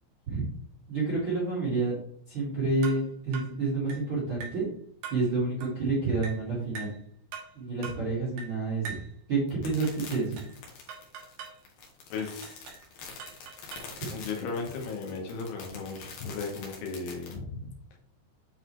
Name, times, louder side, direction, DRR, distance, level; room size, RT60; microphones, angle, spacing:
voice 1, 0.9-2.0 2.3-4.7 5.1-6.9 7.5-9.0 9.3-10.4, right 3 dB, 50° right, -8 dB, 1.4 m, -29 dB
sound 1, 2.8-3.1 3.3-3.6 3.9-4.1 4.4-4.6 5.0-5.3 5.6-5.8 6.2-6.5 6.8-7.0 7.3-7.6 7.8-8.1 8.4-8.6 8.8-9.1 9.8-10.6 10.9-11.6 12.2-12.9 13.2-14.0, right 6 dB, 70° right, 3.2 m, -43 dB
sound 2, 9.5-17.4, left 5 dB, 60° left, 2.4 m, -45 dB
voice 2, 12.1-12.6 14.1-18.0, left 4 dB, 85° left, 1 dB, 3.7 m, -36 dB
9.4 x 4.1 x 3.1 m, 0.62 s
omnidirectional pair, 5.4 m